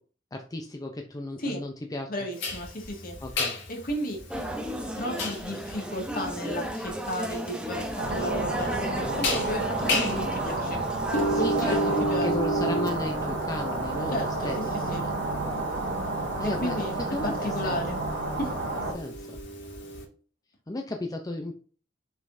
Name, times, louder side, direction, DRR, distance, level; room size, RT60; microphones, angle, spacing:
voice 1, 0.3-2.1 3.2-3.5 11.3-15.1 16.4-16.9 17.1-17.8 18.9-19.4 20.7-21.5, left 2 dB, 20° left, 3 dB, 0.6 m, -34 dB
voice 2, 2.1-3.2 3.7-4.2 5.0-10.8 11.1-12.3 14.1-15.1 16.4-18.0 18.4-18.5, equal, 50° left, 1 dB, 2.0 m, -33 dB
sound 1, 2.4-20.0, equal, 65° left, 2.7 m, -33 dB
sound 2, 4.3-12.2, right 1 dB, 5° right, 0.9 m, -34 dB
sound 3, 8.0-18.9, right 2 dB, 70° right, 1.8 m, -30 dB
6.5 x 5.4 x 2.7 m, 0.40 s
head